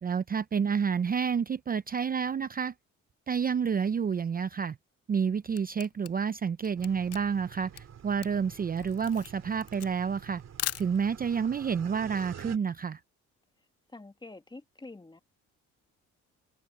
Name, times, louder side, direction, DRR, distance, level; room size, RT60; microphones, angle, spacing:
voice 1, 0.0-2.7 3.3-4.8 5.1-10.4 10.8-13.0, right 6 dB, 30° right, 0.5 m, -29 dB
Camera, 5.1-11.4, left 14 dB, 55° left, 0.4 m, -40 dB
sound 1, 6.8-12.6, right 9 dB, 60° right, 2.7 m, -48 dB
voice 2, 13.9-15.2, left 2 dB, 15° left, 1.4 m, -47 dB
cardioid pair, 90°, 30 cm